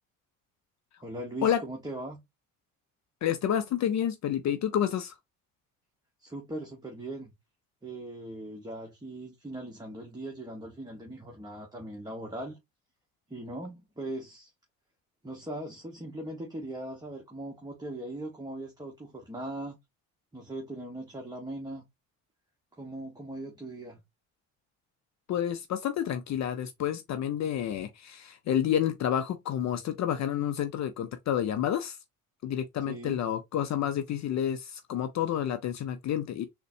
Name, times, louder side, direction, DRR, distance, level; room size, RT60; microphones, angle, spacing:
voice 1, 1.0-2.2 6.2-7.3 7.8-12.6 13.3-14.5 15.2-19.8 20.3-21.8 22.8-24.0 32.9-33.2, right 1 dB, 10° right, 1.0 m, -39 dB
voice 2, 3.2-5.1 25.3-32.0 32.4-36.4, left 10 dB, 50° left, 0.5 m, -29 dB
3.8 x 2.2 x 2.6 m
supercardioid pair, 65°, 37 cm